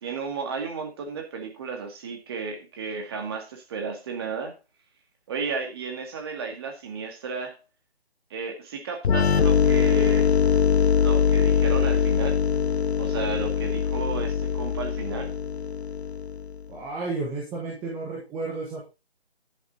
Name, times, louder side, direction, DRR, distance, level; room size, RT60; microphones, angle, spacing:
voice 1, 0.0-4.5 5.3-7.6 8.3-10.3 11.0-12.4 12.9-15.3, right 5 dB, 25° right, 4 dB, 1.9 m, -33 dB
sound 1, 9.0-16.6, left 7 dB, 85° left, 0.6 m, -22 dB
voice 2, 16.7-18.8, right 3 dB, 5° right, -3 dB, 1.1 m, -32 dB
11.0 x 7.0 x 4.2 m, 0.28 s
figure-of-eight pair, 160°, 31 cm